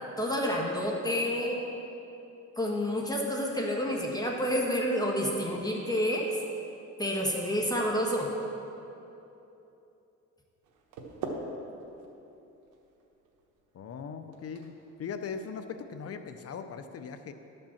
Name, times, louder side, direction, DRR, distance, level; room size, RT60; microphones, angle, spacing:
voice 1, 0.2-1.6 2.6-6.2 7.0-8.3, equal, 15° left, -1 dB, 1.4 m, -29 dB
sound 1, 10.6-16.5, right 3 dB, 85° right, 1.2 m, -44 dB
voice 2, 13.7-14.7 15.0-17.3, left 6 dB, 50° left, 8 dB, 0.7 m, -39 dB
11.5 x 5.4 x 7.1 m, 2.9 s
cardioid pair, 90°, 30 cm